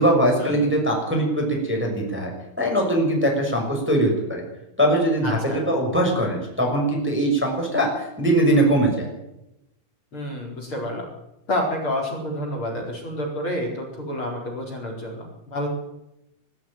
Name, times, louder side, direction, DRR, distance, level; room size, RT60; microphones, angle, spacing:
voice 1, 0.0-2.3 2.6-4.4 4.8-9.1, right 1 dB, ahead, 0 dB, 6.0 m, -21 dB
voice 2, 5.2-5.6 10.1-11.1 11.5-15.7, left 1 dB, 30° left, 0 dB, 4.9 m, -29 dB
22.0 x 12.5 x 9.2 m, 0.87 s
omnidirectional pair, 5.4 m